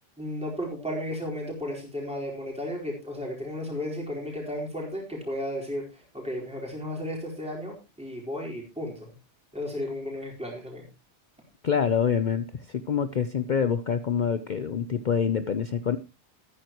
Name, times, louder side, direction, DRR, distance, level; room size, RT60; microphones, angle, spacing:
voice 1, 0.2-9.1 9.5-10.9, left 1 dB, 5° right, -2 dB, 4.3 m, -34 dB
voice 2, 11.6-16.0, left 7 dB, 45° left, 11 dB, 0.8 m, -26 dB
14.0 x 13.0 x 3.0 m, 0.27 s
omnidirectional pair, 1.2 m